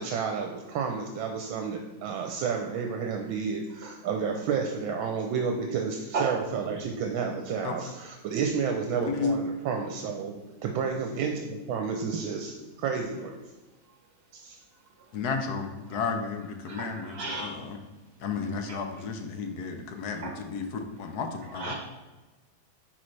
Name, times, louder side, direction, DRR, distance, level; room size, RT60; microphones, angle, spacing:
voice 1, 0.0-10.3 10.6-13.4 14.3-14.6, right 6 dB, 80° right, 3 dB, 1.4 m, -31 dB
voice 2, 9.0-9.4 15.1-17.8 18.2-21.7, left 5 dB, 65° left, 5 dB, 1.0 m, -32 dB
voice 3, 16.7-17.5 20.2-20.3 21.6-21.7, right 4 dB, 35° right, 0 dB, 1.4 m, -32 dB
10.0 x 4.1 x 3.2 m, 1.2 s
omnidirectional pair, 2.2 m